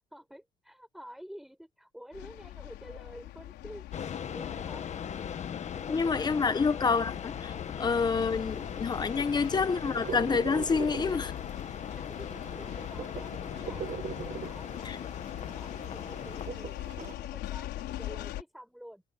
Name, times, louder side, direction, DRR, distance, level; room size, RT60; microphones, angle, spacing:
voice 1, 0.1-5.3 5.7-6.8 9.2-9.5 11.6-19.0, equal, ahead, 7.4 m, -50 dB
sound 1, 2.1-18.4, left 14 dB, 80° left, 4.0 m, -42 dB
sound 2, 3.9-16.5, left 8 dB, 45° left, 1.5 m, -39 dB
voice 2, 5.9-7.3 7.8-11.3 14.8-15.0, left 5 dB, 25° left, 1.2 m, -28 dB
sound 3, 8.3-17.1, right 8 dB, 45° right, 2.1 m, -43 dB
cardioid pair, 110°, 17 cm